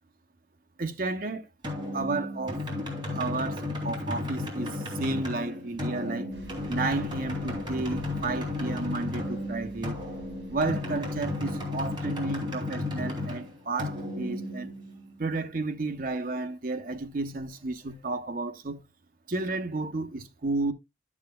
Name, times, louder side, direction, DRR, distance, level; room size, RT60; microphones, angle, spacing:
voice 1, 0.8-1.5 1.9-2.6 3.1-6.3 6.7-10.0 10.5-14.7 15.2-18.8 19.3-20.7, right 3 dB, 50° right, 0.8 m, -32 dB
sound 1, 1.6-15.2, left 2 dB, 25° right, 2.9 m, -34 dB
Bus, 6.3-12.1, equal, 70° right, 3.5 m, -49 dB
11.5 x 7.2 x 2.3 m
head